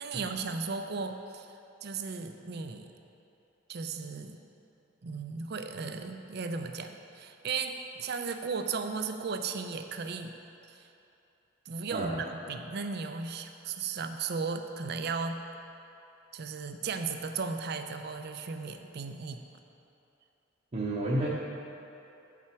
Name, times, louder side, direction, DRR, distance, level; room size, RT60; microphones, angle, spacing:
voice 1, 0.0-2.9 3.7-4.4 5.0-10.3 10.7-10.9 11.7-15.4 16.3-19.4, right 5 dB, 55° right, 7 dB, 0.5 m, -36 dB
voice 2, 20.7-21.3, right 1 dB, 35° right, -7 dB, 0.8 m, -30 dB
8.7 x 5.8 x 4.6 m, 2.8 s
head